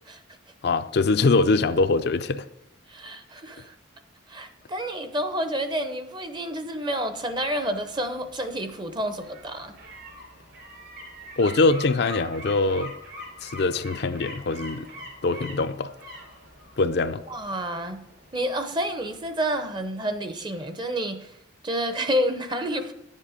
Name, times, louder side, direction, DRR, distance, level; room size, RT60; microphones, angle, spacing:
voice 1, 0.6-2.5 11.4-12.9 13.4-14.9 15.2-15.9 16.8-17.2, left 3 dB, 55° left, 9 dB, 0.5 m, -23 dB
voice 2, 2.9-3.7 4.3-9.7 17.3-18.0 18.3-21.3 21.6-22.9, equal, 25° right, 8 dB, 0.7 m, -29 dB
Seagulls short, 6.9-19.7 20.1-20.2, equal, 60° right, 3.8 m, -44 dB
9.9 x 7.4 x 5.0 m, 0.81 s
head